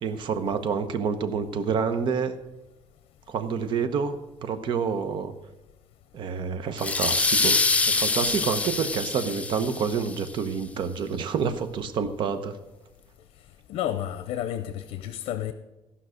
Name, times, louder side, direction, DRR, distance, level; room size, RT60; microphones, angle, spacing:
voice 1, 0.0-2.4 3.3-5.3 6.1-7.6 7.9-12.6, right 6 dB, 55° right, 1.0 m, -28 dB
sound 1, 6.8-10.2, left 3 dB, 15° left, 0.4 m, -25 dB
voice 2, 13.7-15.5, left 11 dB, 85° left, 0.7 m, -31 dB
15.0 x 5.7 x 6.4 m
cardioid pair, 155°, 10 cm